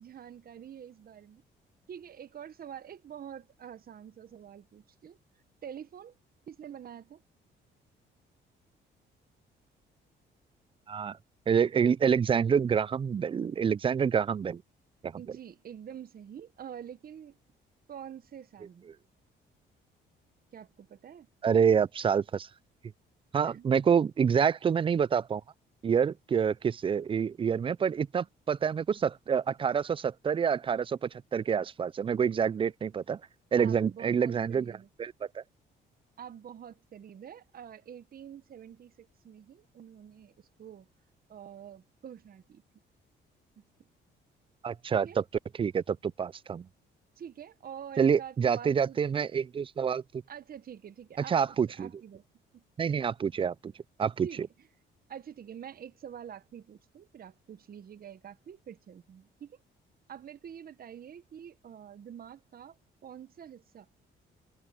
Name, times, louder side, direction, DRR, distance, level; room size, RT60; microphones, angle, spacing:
voice 1, 0.0-1.4 1.9-5.2 5.6-6.2 6.5-7.2 15.2-17.4 17.9-18.9 20.5-21.3 23.4-23.9 33.6-34.9 36.2-40.9 41.3-42.6 43.6-43.9 44.9-45.2 47.2-49.3 50.3-52.2 52.5-52.6 54.2-54.4 55.1-59.6 60.1-62.8 63.0-63.9, right 9 dB, 50° right, 1.0 m, -46 dB
voice 2, 11.5-14.6 15.0-15.1 21.4-22.5 23.3-25.4 25.8-33.2 33.5-35.4 44.6-45.1 45.6-46.7 48.0-50.2 51.3-51.9 52.8-53.7 54.0-54.3, right 7 dB, 25° right, 0.3 m, -27 dB
cardioid pair, 90°, 20 cm